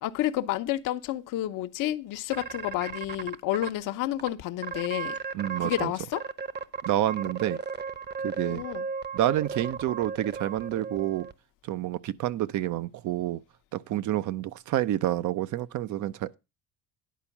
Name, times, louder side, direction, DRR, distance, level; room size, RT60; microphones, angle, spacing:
voice 1, 0.0-5.2 5.6-6.2 8.4-8.9, left 14 dB, 65° left, 0.9 m, -30 dB
sound 1, 2.3-3.7 4.2-4.3 4.6-5.8 6.1-11.3, right 5 dB, 30° right, 0.9 m, -35 dB
voice 2, 5.3-5.9 6.9-7.6 8.2-8.6 9.1-11.3 11.7-13.4 13.7-16.3, right 13 dB, 60° right, 0.7 m, -28 dB
10.5 x 4.4 x 7.1 m
supercardioid pair, 90°, 34 cm